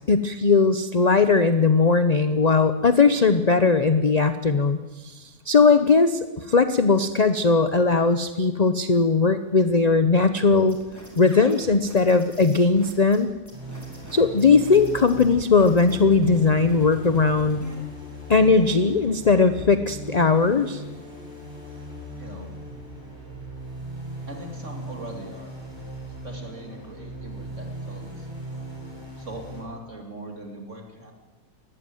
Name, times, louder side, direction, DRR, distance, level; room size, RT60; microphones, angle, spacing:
voice 1, 0.1-10.8 11.2-13.3 14.1-17.6 18.3-20.8, left 4 dB, 35° left, 10 dB, 0.6 m, -19 dB
sound 1, 10.5-17.7, right 1 dB, 10° left, 4.5 m, -44 dB
sound 2, 13.5-29.6, equal, 15° right, 6.4 m, -38 dB
voice 2, 22.2-22.5 24.3-25.5 26.2-28.3 29.1-31.1, right 1 dB, 45° right, 2 dB, 3.0 m, -40 dB
20.0 x 15.0 x 9.3 m, 1.2 s
omnidirectional pair, 1.7 m